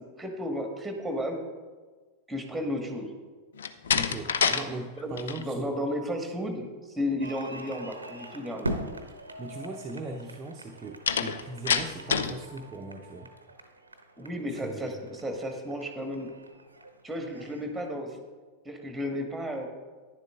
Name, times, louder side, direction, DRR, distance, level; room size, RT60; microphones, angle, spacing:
voice 1, 0.2-1.4 2.3-3.1 5.0-6.7 7.0-8.7 14.2-16.3 17.0-18.1 18.7-19.6, equal, 5° right, 4 dB, 1.6 m, -33 dB
Slam, 3.5-4.6 5.0-5.4 11.1-12.4, left 7 dB, 65° left, 0.5 m, -27 dB
voice 2, 3.9-5.7 9.4-13.3 14.6-15.0, right 2 dB, 20° right, 0 dB, 0.8 m, -39 dB
sound 1, 7.2-17.9, right 1 dB, 80° right, 0.8 m, -42 dB
10.5 x 10.5 x 3.6 m, 1.4 s
figure-of-eight pair, 90°, 0 cm